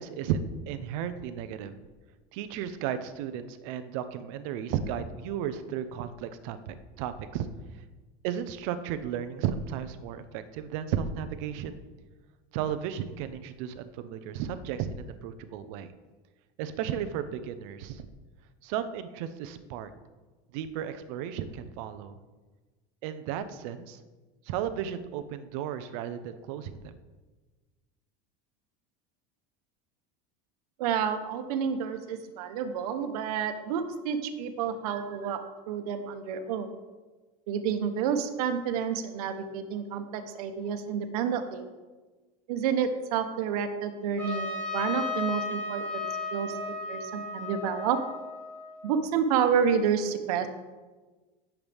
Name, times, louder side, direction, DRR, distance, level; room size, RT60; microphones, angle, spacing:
voice 1, 0.0-1.7 2.3-7.5 8.2-11.8 12.5-15.9 16.6-18.0 18.6-19.9 20.5-22.2 23.0-24.0 24.5-26.9, right 9 dB, 60° right, 11 dB, 0.8 m, -34 dB
voice 2, 30.8-35.4 35.7-36.7 37.5-41.7 42.5-48.0 48.8-50.5, right 7 dB, 90° right, 7 dB, 1.2 m, -29 dB
Trumpet, 44.2-49.0, left 3 dB, 10° left, 3.0 m, -35 dB
16.0 x 7.3 x 3.5 m, 1.3 s
cardioid pair, 175°, 19 cm